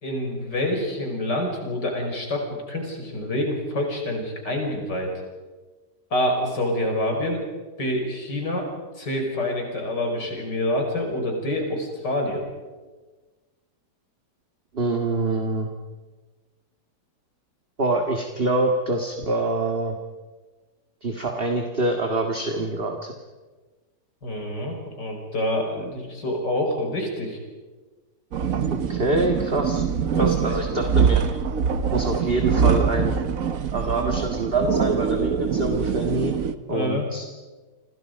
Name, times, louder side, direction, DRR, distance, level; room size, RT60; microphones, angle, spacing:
voice 1, 0.0-5.2 6.1-7.4 7.8-8.7 9.0-12.4 24.2-27.4 30.1-30.6 36.7-37.1, left 1 dB, 75° left, 2 dB, 6.0 m, -27 dB
voice 2, 14.7-15.7 17.8-20.0 21.0-23.1 28.9-29.8 30.2-31.2 31.9-33.1 33.7-36.4 36.7-37.3, right 2 dB, 35° right, 3 dB, 2.0 m, -25 dB
sound 1, 28.3-36.6, right 6 dB, 55° right, 1.4 m, -23 dB
29.5 x 26.5 x 5.3 m, 1.3 s
omnidirectional pair, 1.9 m